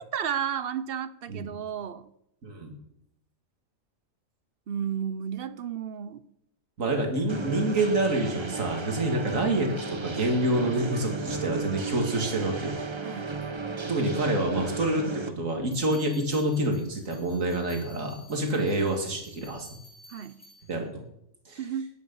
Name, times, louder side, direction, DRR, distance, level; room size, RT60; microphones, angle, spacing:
voice 1, 0.0-2.1 4.7-6.2 13.0-13.4 18.5-18.7 20.1-20.4 21.6-21.9, right 8 dB, 55° right, 0.8 m, -33 dB
voice 2, 6.8-12.8 13.9-19.8 20.7-20.9 21.5-21.6, right 1 dB, 80° right, 2.6 m, -27 dB
sound 1, 7.3-15.3, right 3 dB, 25° right, 0.8 m, -34 dB
sound 2, 15.7-20.8, left 1 dB, 80° left, 6.7 m, -53 dB
15.5 x 9.7 x 5.5 m
omnidirectional pair, 1.4 m